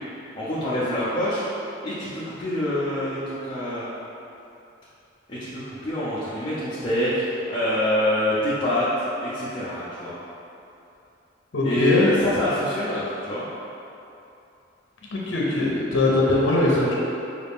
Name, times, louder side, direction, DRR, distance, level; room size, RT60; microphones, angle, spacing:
voice 1, 0.4-1.4 1.8-3.9 5.3-8.9 9.2-10.1 11.6-13.4, left 1 dB, 25° left, -11 dB, 0.6 m, -26 dB
voice 2, 11.5-12.1 15.1-17.0, left 2 dB, 75° left, -4 dB, 0.7 m, -21 dB
5.2 x 2.5 x 3.5 m, 2.8 s
head